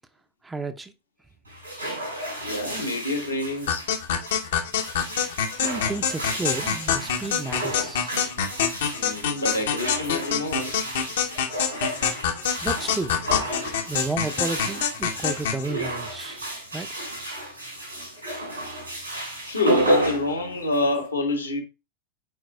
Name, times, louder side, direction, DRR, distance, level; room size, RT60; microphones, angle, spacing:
voice 1, 0.4-0.9 5.6-8.2 12.6-13.2 13.9-16.5 16.7-17.0, right 3 dB, 10° right, 0.6 m, -32 dB
sound 1, 1.5-21.1, right 1 dB, 80° right, 4.7 m, -32 dB
voice 2, 2.4-3.9 8.9-10.7 18.6-18.7 19.5-21.6, left 2 dB, 80° left, 1.6 m, -27 dB
sound 2, 3.7-15.6, left 7 dB, 60° left, 0.9 m, -26 dB
11.5 x 4.7 x 2.2 m
figure-of-eight pair, 90°, 0 cm